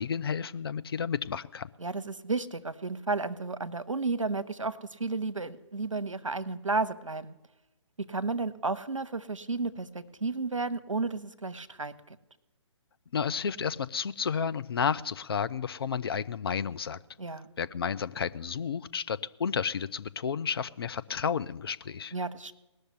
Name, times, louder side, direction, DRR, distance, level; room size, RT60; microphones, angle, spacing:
voice 1, 0.0-1.7 13.1-17.0 17.6-22.1, left 6 dB, 50° left, 0.5 m, -31 dB
voice 2, 1.8-7.3 8.0-12.2 17.2-17.5 22.1-22.6, right 3 dB, 75° right, 0.8 m, -32 dB
19.0 x 6.5 x 9.4 m
figure-of-eight pair, 130°, 16 cm